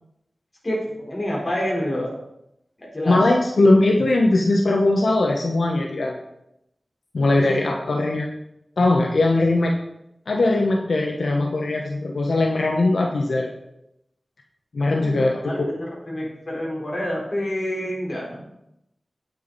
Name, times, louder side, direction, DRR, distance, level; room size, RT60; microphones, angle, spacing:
voice 1, 0.6-2.2 2.9-3.2 7.4-7.6 7.9-8.0 15.0-18.4, equal, 40° left, -3 dB, 4.2 m, -28 dB
voice 2, 3.1-6.2 7.1-8.3 8.8-9.7 10.3-13.5 14.7-15.6, left 2 dB, 85° left, 1 dB, 1.0 m, -20 dB
9.0 x 8.2 x 4.1 m, 0.83 s
wide cardioid pair, 65°, 0 cm